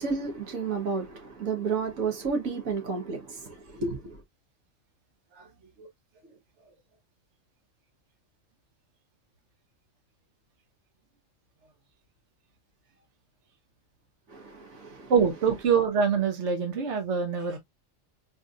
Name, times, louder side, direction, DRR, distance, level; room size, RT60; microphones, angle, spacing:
voice 1, 0.0-3.4 3.7-4.2 14.3-15.1, right 4 dB, 85° right, 1.7 m, -31 dB
voice 2, 15.1-17.6, right 6 dB, 60° right, 1.4 m, -25 dB
4.4 x 3.5 x 2.4 m
omnidirectional pair, 1.4 m